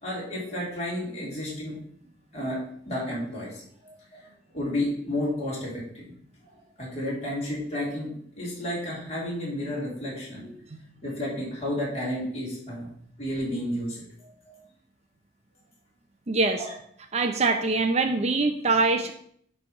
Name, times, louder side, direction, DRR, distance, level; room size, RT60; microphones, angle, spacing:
voice 1, 0.0-1.8 2.3-3.6 4.1-4.2 4.5-6.1 6.8-10.5 11.0-12.9 13.2-14.0 14.5-14.6 16.5-16.7, left 1 dB, 35° left, -5 dB, 3.2 m, -31 dB
voice 2, 16.3-16.6 17.1-19.1, right 3 dB, 35° right, 6 dB, 0.6 m, -23 dB
9.6 x 3.4 x 5.6 m, 0.64 s
head